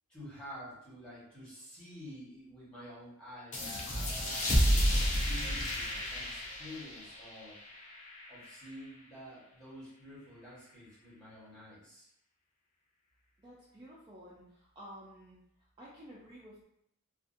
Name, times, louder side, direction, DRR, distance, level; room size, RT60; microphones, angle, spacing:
voice 1, 0.1-4.5 4.9-7.5 8.3-12.1, equal, 5° left, -9 dB, 1.1 m, -49 dB
sound 1, 3.5-8.7, equal, 35° left, 0.5 m, -31 dB
voice 2, 13.4-15.4 15.8-16.6, equal, 20° right, -7 dB, 0.4 m, -52 dB
2.5 x 2.4 x 2.5 m, 0.76 s
head